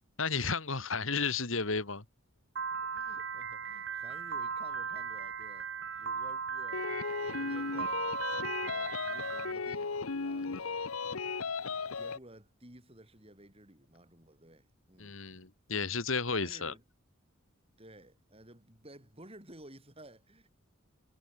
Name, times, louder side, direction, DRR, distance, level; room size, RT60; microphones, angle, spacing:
voice 1, 0.2-2.0 15.0-16.7, left 4 dB, 70° left, 2.5 m, -33 dB
Piano, 2.6-9.5, right 6 dB, 55° right, 1.4 m, -37 dB
voice 2, 2.8-5.7 6.0-6.9 7.2-10.8 11.7-15.2 16.3-16.8 17.8-20.5, right 1 dB, 25° right, 5.5 m, -54 dB
sound 1, 6.7-12.2, left 4 dB, 85° left, 1.0 m, -36 dB
head